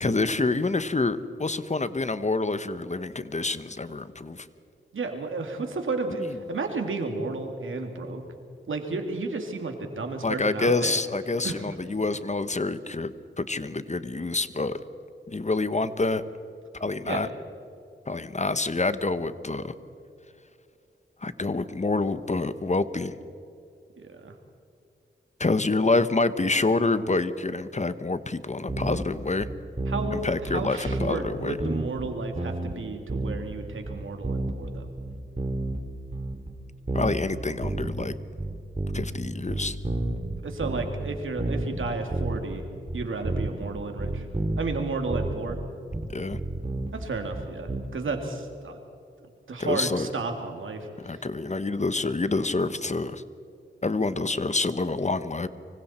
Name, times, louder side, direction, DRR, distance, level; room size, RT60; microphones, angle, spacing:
voice 1, 0.0-4.5 6.2-6.3 10.2-14.8 15.3-16.2 16.8-17.3 18.1-19.7 21.2-23.1 25.4-29.5 30.1-31.6 36.9-38.1 38.9-39.8 46.1-46.4 49.6-50.1 51.0-53.2 53.8-55.5, left 3 dB, 35° left, 13 dB, 1.1 m, -27 dB
voice 2, 4.9-8.2 8.7-11.0 11.4-11.7 17.0-17.3 24.0-24.3 29.9-34.9 40.4-42.7 42.9-44.2 44.6-45.6 46.9-48.8 49.5-51.2, right 3 dB, 85° right, 4 dB, 2.5 m, -32 dB
sound 1, 28.7-29.1 29.4-30.2 30.5-31.3 31.6-32.8 33.1-33.6 33.9-35.8 36.1-36.5 36.9-38.1 38.4-39.2 39.5-42.6 42.9-43.7 44.0-44.8 45.1-47.8, right 2 dB, 35° right, 2.6 m, -30 dB
25.0 x 24.5 x 4.4 m, 2.6 s
cardioid pair, 55°, 20 cm